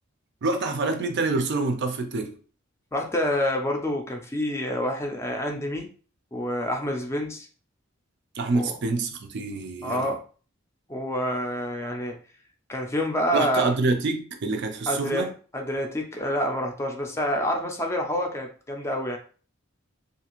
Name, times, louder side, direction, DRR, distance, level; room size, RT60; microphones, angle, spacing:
voice 1, 0.4-2.3 8.4-10.1 13.3-15.3, right 3 dB, 60° right, 0.4 m, -26 dB
voice 2, 2.9-5.9 6.3-7.5 8.5-8.7 9.8-10.2 10.9-12.1 12.7-13.7 14.9-19.2, equal, 15° left, 0.4 m, -27 dB
2.6 x 2.5 x 2.9 m
head